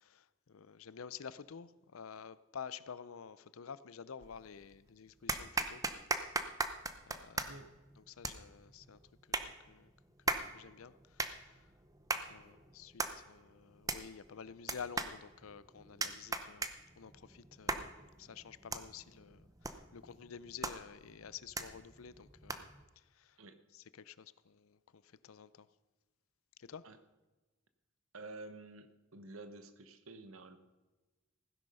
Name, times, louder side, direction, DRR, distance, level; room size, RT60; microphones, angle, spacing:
voice 1, 0.0-5.8 7.1-7.6 8.0-9.0 9.3-9.9 10.3-11.6 12.3-17.9 18.2-22.7 23.2-23.4 23.7-25.7 26.6-26.8, left 6 dB, 90° left, 0.6 m, -50 dB
sound 1, 4.2-4.7 5.3-22.8, right 3 dB, 15° right, 0.7 m, -40 dB
voice 2, 7.4-7.7 12.1-12.4 23.4-23.6 26.8-27.0 28.1-30.6, right 2 dB, 85° right, 1.1 m, -51 dB
16.0 x 10.0 x 5.5 m
head